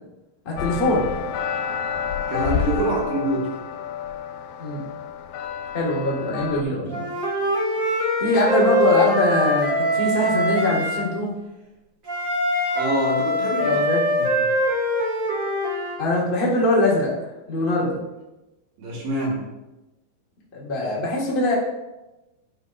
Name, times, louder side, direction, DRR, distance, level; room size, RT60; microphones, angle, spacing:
voice 1, 0.4-1.1 4.6-4.8 5.7-7.0 8.2-11.3 13.6-14.0 16.0-17.1 17.5-18.0 20.5-21.5, left 1 dB, 45° left, -6 dB, 0.6 m, -22 dB
sound 1, 0.6-6.6, left 7 dB, 80° left, 2.3 m, -29 dB
voice 2, 2.3-3.5 12.7-13.8 18.8-19.4, right 2 dB, 70° right, -2 dB, 3.1 m, -25 dB
Wind instrument woodwind instrument, 6.9-11.1 12.1-16.0, equal, 40° right, 1.2 m, -23 dB
11.0 x 5.3 x 2.5 m, 1.0 s
omnidirectional pair, 4.3 m